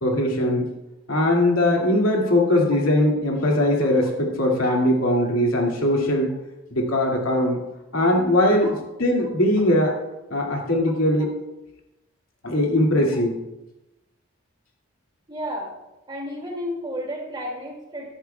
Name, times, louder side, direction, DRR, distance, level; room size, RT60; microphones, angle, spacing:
voice 1, 0.0-0.6 1.1-6.4 6.7-7.6 7.9-8.7 9.0-9.9 10.3-11.3 12.4-13.4, left 1 dB, 85° left, -1 dB, 2.3 m, -20 dB
voice 2, 2.2-2.6 5.2-5.3 8.6-8.8 9.8-9.9 11.2-11.3 15.3-15.7 16.1-18.1, equal, 20° right, -1 dB, 2.4 m, -33 dB
15.0 x 11.5 x 2.3 m, 0.96 s
head